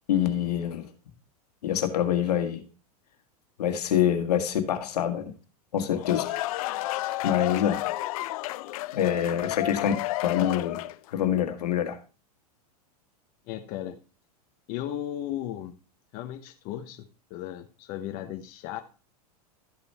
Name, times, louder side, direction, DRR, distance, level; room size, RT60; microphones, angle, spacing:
voice 1, 0.1-0.9 1.6-2.6 3.6-5.3 5.7-6.3 7.2-7.8 8.9-9.9 10.2-10.8 11.1-12.0, left 10 dB, 85° left, 1.7 m, -25 dB
sound 1, 5.8-11.1, left 17 dB, 65° left, 0.5 m, -31 dB
voice 2, 13.5-14.0 14.7-15.8 16.1-18.8, left 12 dB, 45° left, 1.0 m, -36 dB
13.0 x 5.3 x 4.2 m
hypercardioid pair, 120°, 20 cm